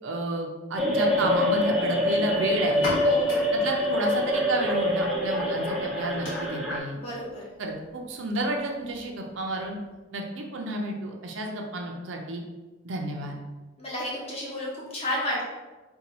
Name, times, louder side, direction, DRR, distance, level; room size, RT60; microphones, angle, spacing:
voice 1, 0.0-2.9 3.5-7.0 7.6-9.8 10.1-12.4 12.8-13.4, right 2 dB, 65° right, 1 dB, 0.5 m, -31 dB
sound 1, 0.8-6.8, left 1 dB, ahead, 0.4 m, -25 dB
sound 2, 2.6-10.1, left 1 dB, 65° left, 1.1 m, -40 dB
voice 2, 3.0-3.4 6.9-7.5 13.8-15.4, left 1 dB, 30° left, -6 dB, 0.8 m, -32 dB
2.7 x 2.3 x 4.1 m, 1.2 s
head